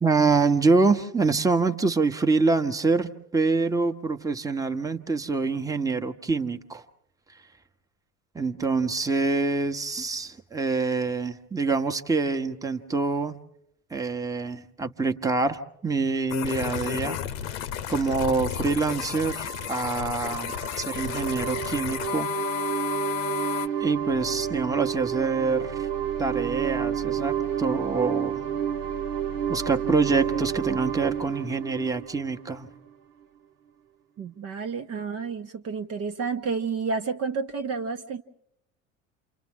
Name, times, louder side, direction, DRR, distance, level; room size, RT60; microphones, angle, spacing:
voice 1, 0.0-6.8 8.3-13.4 13.9-17.2 17.9-22.4 23.8-25.9 26.2-28.4 29.5-32.7, right 4 dB, 10° right, 6 dB, 1.1 m, -25 dB
sound 1, 16.3-23.7, left 10 dB, 60° left, 1.0 m, -32 dB
sound 2, 18.4-32.9, right 9 dB, 70° right, 1.4 m, -31 dB
voice 2, 34.2-38.2, right 5 dB, 40° right, 5 dB, 1.0 m, -30 dB
29.0 x 27.5 x 3.7 m, 0.77 s
figure-of-eight pair, 65°, 39 cm